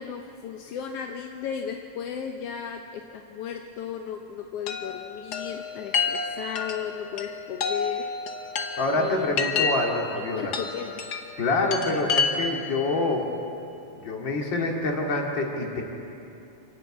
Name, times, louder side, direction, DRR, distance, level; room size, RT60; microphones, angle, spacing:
voice 1, 0.0-8.1 8.9-9.3 9.6-9.7 10.3-10.9, left 8 dB, 70° left, 4 dB, 1.5 m, -35 dB
Chime, 4.7-12.8, left 5 dB, 85° left, 0.8 m, -30 dB
voice 2, 8.8-10.5 11.4-13.3 13.9-15.8, left 2 dB, 40° left, 0 dB, 2.8 m, -26 dB
26.5 x 12.0 x 8.6 m, 2.7 s
omnidirectional pair, 3.4 m